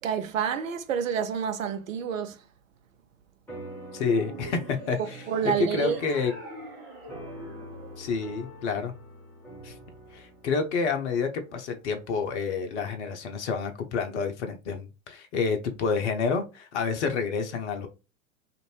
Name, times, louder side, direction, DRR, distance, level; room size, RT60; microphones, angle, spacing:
voice 1, 0.0-2.4 5.3-6.0, right 8 dB, 70° right, 0.6 m, -28 dB
sound 1, 3.5-12.2, equal, 5° left, 0.9 m, -46 dB
voice 2, 3.9-5.0 5.4-6.3 8.0-8.9 9.6-9.7 10.1-17.9, left 5 dB, 55° left, 0.7 m, -28 dB
sound 2, 4.1-8.6, right 3 dB, 40° right, 1.0 m, -44 dB
2.6 x 2.5 x 3.1 m
figure-of-eight pair, 90°, 42 cm